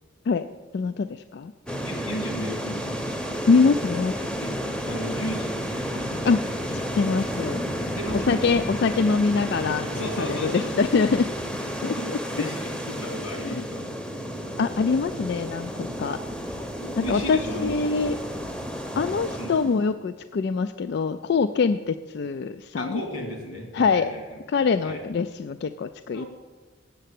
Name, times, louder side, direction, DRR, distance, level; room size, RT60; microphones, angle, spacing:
voice 1, 0.7-1.5 3.5-4.2 6.2-6.4 6.7-7.7 8.1-11.3 11.8-12.2 13.4-13.6 14.6-16.2 17.0-18.2 19.0-23.0 23.7-24.1 24.5-26.3, left 4 dB, 55° left, 11 dB, 0.3 m, -24 dB
sound 1, 1.7-19.9, equal, 5° left, 0.7 m, -32 dB
voice 2, 1.8-3.3 4.4-6.0 7.9-8.3 9.9-10.8 11.9-13.8 16.8-17.9 19.4-19.6 22.7-24.4 24.8-25.0 26.1-26.3, equal, 90° left, 1 dB, 2.7 m, -34 dB
7.8 x 7.5 x 8.3 m, 1.3 s
head